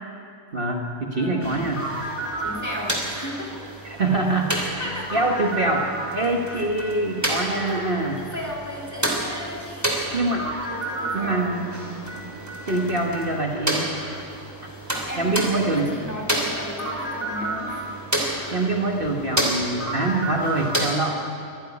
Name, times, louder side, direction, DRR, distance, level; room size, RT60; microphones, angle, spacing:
voice 1, 0.5-1.9 3.8-8.2 10.1-10.5 11.1-12.3 12.7-13.9 15.2-15.9 18.5-21.2, right 2 dB, 45° right, 1 dB, 1.6 m, -25 dB
voice 2, 1.1-1.7 2.4-3.7 4.5-5.1 6.5-6.7 7.2-10.2 10.6-11.7 15.1-18.5, left 1 dB, 15° left, -2 dB, 3.5 m, -35 dB
video Poker, 1.4-20.9, right 1 dB, 10° right, 3.1 m, -30 dB
23.5 x 11.5 x 9.6 m, 2.4 s
omnidirectional pair, 1.3 m